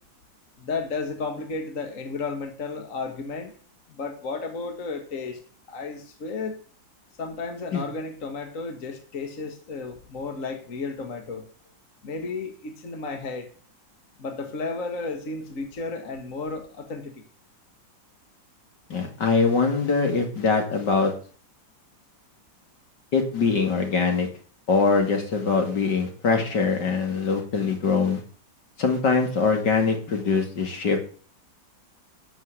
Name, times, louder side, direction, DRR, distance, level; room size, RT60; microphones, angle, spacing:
voice 1, 0.6-3.5 3.9-5.4 5.7-6.6 7.2-11.4 12.0-13.5 14.2-17.2, left 4 dB, 45° left, 5 dB, 1.9 m, -33 dB
voice 2, 18.9-21.1 23.1-24.3 24.7-28.2 28.8-31.0, left 4 dB, 65° left, 3 dB, 3.0 m, -23 dB
12.0 x 6.5 x 8.0 m, 0.43 s
omnidirectional pair, 2.0 m